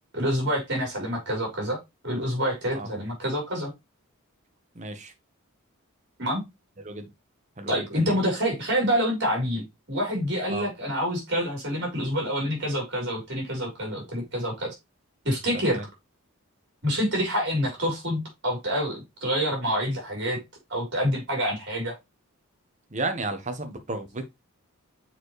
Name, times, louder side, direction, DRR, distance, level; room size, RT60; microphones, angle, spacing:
voice 1, 0.1-1.8 2.0-3.7 6.2-6.4 7.7-14.7 15.2-15.8 16.8-20.4 20.7-21.9, equal, 50° right, 4.1 m, -27 dB
voice 2, 4.7-5.1 6.8-7.1 7.6-8.2 10.5-10.6 15.5-15.8 22.9-24.3, right 2 dB, 35° right, 1.1 m, -33 dB
7.3 x 4.6 x 3.2 m
head